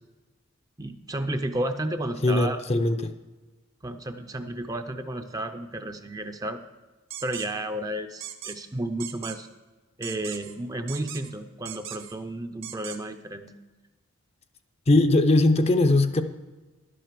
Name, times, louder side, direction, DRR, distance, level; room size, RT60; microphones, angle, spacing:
voice 1, 0.8-2.6 3.8-6.6 7.2-9.5 10.0-13.5, right 1 dB, 15° right, 8 dB, 0.5 m, -32 dB
voice 2, 2.2-3.1 14.9-16.2, left 2 dB, 30° left, 9 dB, 0.5 m, -20 dB
sound 1, 7.1-7.5 8.2-8.6 9.0-9.4 10.0-10.6 10.9-11.3 11.7-12.2 12.6-13.0, right 10 dB, 65° right, 0.9 m, -38 dB
11.5 x 7.7 x 6.6 m, 1.2 s
head